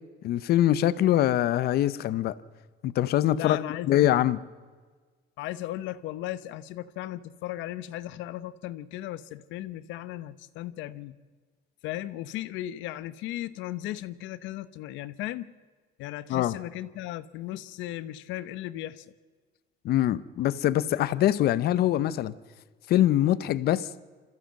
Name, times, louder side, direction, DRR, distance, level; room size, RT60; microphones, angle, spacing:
voice 1, 0.2-2.3 2.8-3.6 3.8-4.4 16.3-16.6 19.8-22.3 22.9-23.9, left 13 dB, 55° left, 0.8 m, -23 dB
voice 2, 3.3-4.0 5.4-11.2 11.8-15.5 16.0-19.1, left 14 dB, 80° left, 1.0 m, -36 dB
27.0 x 14.5 x 7.6 m
cardioid pair, 155°, 19 cm